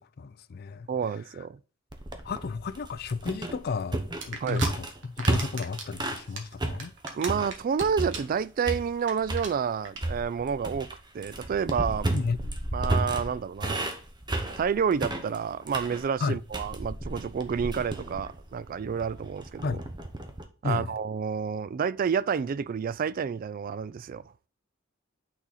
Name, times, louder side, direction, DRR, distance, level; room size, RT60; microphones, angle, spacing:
voice 1, 0.2-0.9 2.2-4.0 4.3-6.9 12.1-12.4 16.2-16.4 19.6-19.8 20.6-20.9, left 4 dB, 50° left, 0.4 m, -32 dB
voice 2, 0.9-1.6 4.4-4.6 7.1-10.9 11.1-12.1 12.7-13.9 14.6-19.8 20.6-24.2, right 6 dB, 45° right, 0.3 m, -29 dB
sound 1, 1.9-6.3 6.6-8.4 8.6-9.5 10.0-20.4, right 1 dB, 20° right, 0.9 m, -33 dB
sound 2, 4.2-4.7 5.0-5.9 6.2-7.8 8.1-8.4 8.7-8.8 9.0-9.1 9.4-9.5 9.9-10.0, right 4 dB, 65° right, 1.5 m, -36 dB
8.7 x 4.1 x 4.1 m
head